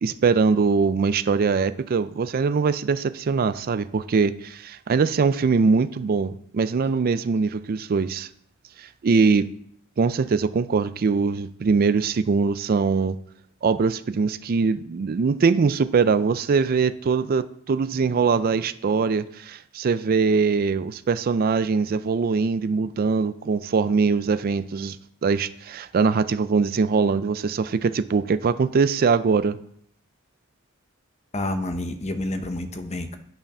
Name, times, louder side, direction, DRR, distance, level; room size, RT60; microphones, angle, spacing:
voice 1, 0.0-8.3 8.8-9.5 10.0-13.2 13.6-25.0 25.2-29.6, right 5 dB, 45° right, 14 dB, 0.4 m, -22 dB
voice 2, 31.3-33.2, left 1 dB, 30° left, 8 dB, 0.9 m, -29 dB
9.1 x 5.8 x 5.4 m, 0.64 s
head